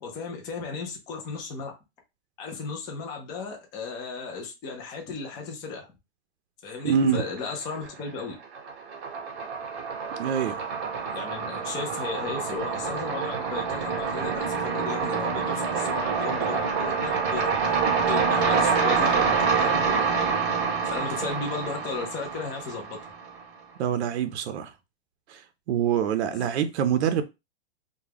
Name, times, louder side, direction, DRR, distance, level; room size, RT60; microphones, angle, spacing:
voice 1, 0.0-1.7 2.4-5.9 6.6-8.4 11.1-17.6 17.9-20.3 20.8-23.0 26.3-26.5, left 4 dB, 15° left, 0.3 m, -35 dB
voice 2, 6.8-7.2 10.2-10.6 23.8-24.7 25.3-25.4 25.7-27.2, right 8 dB, 70° right, 0.5 m, -25 dB
sound 1, 7.1-7.9 8.2-23.4, right 5 dB, 30° right, 0.7 m, -27 dB
2.3 x 2.2 x 3.3 m
hypercardioid pair, 135°, 33 cm